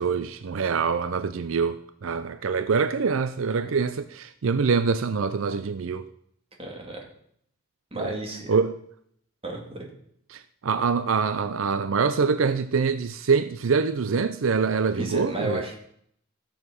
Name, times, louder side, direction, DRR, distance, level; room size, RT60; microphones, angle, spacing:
voice 1, 0.0-6.1 8.0-8.2 8.5-8.8 10.3-15.6, right 5 dB, 75° right, 0.5 m, -25 dB
voice 2, 6.6-7.0 7.9-8.5 9.4-9.9 15.0-15.8, right 1 dB, 25° right, 2.6 m, -33 dB
14.0 x 7.4 x 6.2 m
head